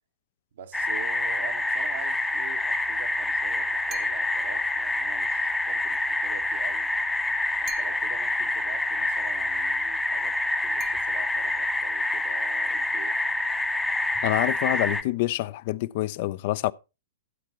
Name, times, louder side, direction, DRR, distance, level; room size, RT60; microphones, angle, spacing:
voice 1, 0.5-6.9 7.6-13.2, right 8 dB, 65° right, 1.2 m, -44 dB
sound 1, 0.7-15.0, left 2 dB, 5° left, 0.6 m, -27 dB
sound 2, 3.9-4.5 7.7-8.4 10.8-11.6, right 9 dB, 25° right, 0.9 m, -44 dB
voice 2, 14.2-16.7, left 17 dB, 50° left, 0.4 m, -26 dB
13.0 x 8.2 x 2.9 m
hypercardioid pair, 110°, 0 cm